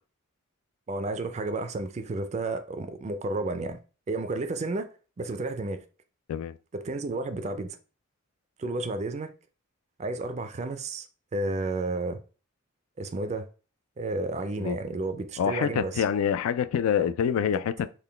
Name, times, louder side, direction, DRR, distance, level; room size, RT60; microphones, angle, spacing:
voice 1, 0.9-3.8 4.1-4.9 5.2-5.8 6.7-7.8 8.6-9.3 10.0-11.1 11.3-12.2 13.0-13.5 14.0-16.0 17.4-17.5, right 2 dB, 30° right, 0.3 m, -31 dB
voice 2, 15.4-17.7, left 8 dB, 90° left, 0.3 m, -26 dB
3.7 x 2.2 x 3.3 m
head